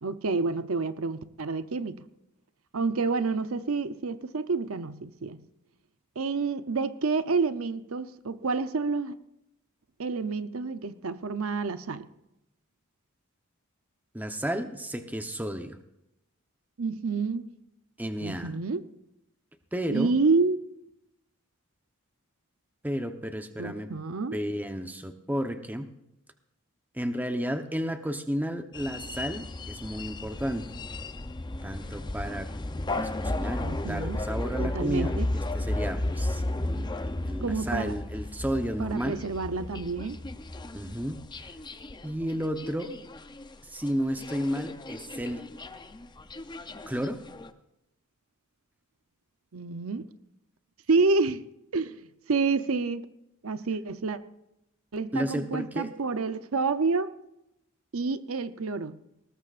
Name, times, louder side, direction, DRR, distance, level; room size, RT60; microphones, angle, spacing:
voice 1, 0.0-2.0 2.7-5.4 6.2-9.2 10.0-12.1 16.8-17.5 18.2-18.8 19.9-20.6 23.6-24.4 33.6-34.2 34.6-35.3 37.4-38.0 38.8-40.2 49.5-50.1 50.9-51.4 51.7-52.0 52.3-53.1 53.4-54.2 54.9-57.1 57.9-59.0, right 4 dB, 75° right, 12 dB, 0.7 m, -28 dB
voice 2, 14.1-15.8 18.0-18.5 19.7-20.1 22.8-23.9 24.3-25.9 26.9-30.7 31.6-32.5 33.0-39.2 40.7-41.2 42.0-42.9 43.7-45.5 46.9-47.2 55.1-55.9, equal, 10° right, 7 dB, 0.9 m, -32 dB
sound 1, 28.7-43.5 43.9-44.0 44.2-47.5, left 1 dB, 20° left, 0.7 m, -34 dB
20.0 x 18.5 x 2.5 m, 0.85 s
head